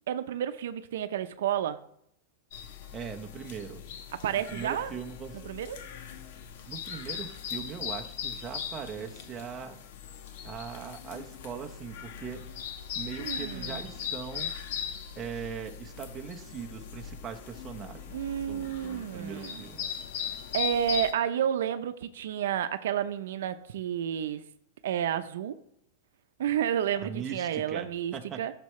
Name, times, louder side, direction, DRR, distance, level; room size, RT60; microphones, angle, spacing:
voice 1, 0.1-1.8 4.1-4.9 5.5-5.8 13.2-13.8 18.1-19.6 20.5-24.4 24.8-25.6 26.4-28.5, right 9 dB, 80° right, 11 dB, 0.6 m, -31 dB
sound 1, 2.5-21.1, left 8 dB, 60° left, 1.1 m, -39 dB
voice 2, 2.9-3.8 4.3-5.4 6.7-9.8 10.4-12.4 12.9-14.5 15.1-19.9 27.0-28.4, right 7 dB, 20° right, 2 dB, 0.9 m, -40 dB
13.5 x 6.7 x 3.2 m, 0.73 s
supercardioid pair, 160°, 0 cm